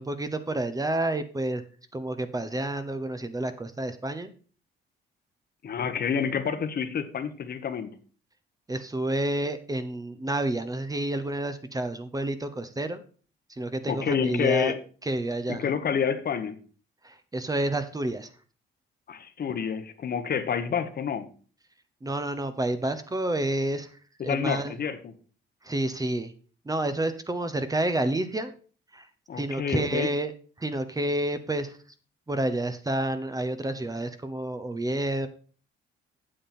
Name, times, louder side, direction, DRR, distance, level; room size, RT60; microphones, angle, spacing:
voice 1, 0.0-1.6 1.9-4.3 8.7-13.0 13.5-14.7 15.0-15.7 17.0-18.3 22.0-24.8 25.6-26.3 26.6-28.5 28.9-29.1 29.3-30.3 30.6-31.8 32.3-35.3, right 1 dB, 20° right, 10 dB, 0.9 m, -29 dB
voice 2, 5.6-8.0 13.9-14.8 15.5-16.6 19.1-21.3 24.2-25.1 29.3-30.1, left 7 dB, 50° left, 9 dB, 1.2 m, -28 dB
8.8 x 7.4 x 4.3 m, 0.39 s
cardioid pair, 90°, 20 cm